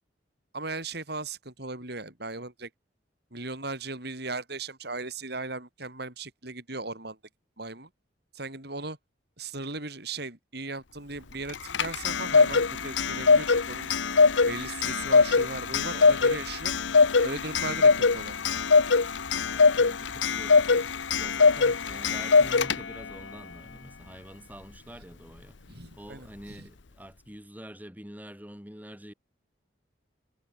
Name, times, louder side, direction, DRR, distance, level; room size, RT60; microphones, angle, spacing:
voice 1, 0.5-2.7 3.3-7.2 7.6-7.9 8.3-9.0 9.4-13.9 14.5-16.7 17.2-18.6 25.7-26.7, right 3 dB, 60° right, 5.7 m, -37 dB
Clock, 11.5-23.1, left 4 dB, 80° left, 0.9 m, -22 dB
voice 2, 19.5-25.7 25.9-29.1, equal, 10° right, 6.5 m, -46 dB
head